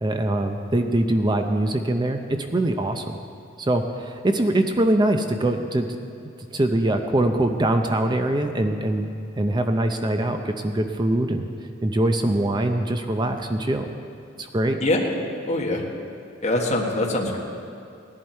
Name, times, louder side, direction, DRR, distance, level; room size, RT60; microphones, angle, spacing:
voice 1, 0.0-3.2 3.6-5.9 6.5-9.1 9.4-11.5 11.8-13.8 14.4-14.8, right 1 dB, 25° right, 5 dB, 0.6 m, -23 dB
voice 2, 15.5-15.8 16.4-17.4, left 1 dB, 35° left, -1 dB, 1.6 m, -23 dB
18.0 x 11.0 x 4.4 m, 2.6 s
head